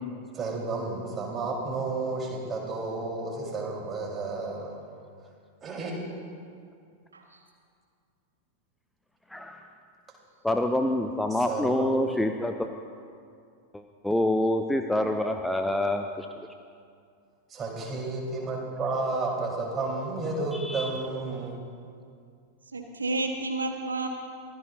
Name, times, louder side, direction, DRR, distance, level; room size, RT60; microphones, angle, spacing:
voice 1, 0.3-4.8 5.6-5.9 11.5-11.9 17.5-21.5, right 3 dB, 25° right, -2 dB, 4.2 m, -31 dB
voice 2, 10.4-12.7 13.7-16.3 20.5-20.9, left 1 dB, 5° left, 6 dB, 0.7 m, -27 dB
voice 3, 22.7-24.1, right 2 dB, 75° right, 3 dB, 1.4 m, -31 dB
24.0 x 16.5 x 2.8 m, 2.3 s
figure-of-eight pair, 90°, 0 cm